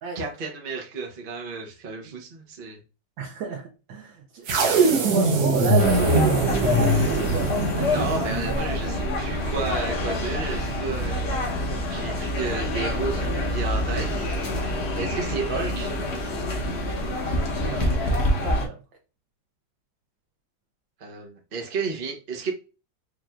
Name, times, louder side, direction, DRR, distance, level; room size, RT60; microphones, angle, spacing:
voice 1, 0.1-2.8 7.9-11.2 11.9-14.3 15.0-15.9 21.0-22.5, right 4 dB, 40° right, 0.8 m, -32 dB
voice 2, 3.2-7.5 7.8-8.0 17.5-18.1 18.4-18.8, right 5 dB, 80° right, 1.5 m, -32 dB
sound 1, 4.5-8.7, right 2 dB, 60° right, 1.2 m, -22 dB
sound 2, 5.8-18.7, left 1 dB, 45° left, 1.0 m, -27 dB
4.9 x 3.1 x 2.4 m
omnidirectional pair, 2.1 m